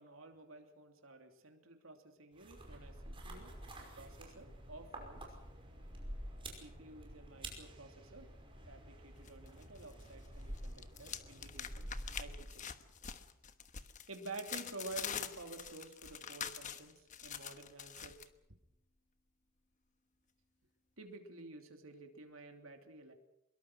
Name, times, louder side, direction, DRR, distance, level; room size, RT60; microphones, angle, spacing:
voice 1, 0.0-5.2 6.5-8.3 8.7-11.9 12.2-12.6 14.1-18.1 21.0-23.1, right 2 dB, 75° right, 4 dB, 2.9 m, -51 dB
sound 1, 2.4-12.7, right 1 dB, 25° right, 5.4 m, -49 dB
sound 2, 9.2-10.1 10.4-18.3, left 8 dB, 35° left, 1.2 m, -45 dB
24.0 x 22.0 x 6.2 m, 0.85 s
head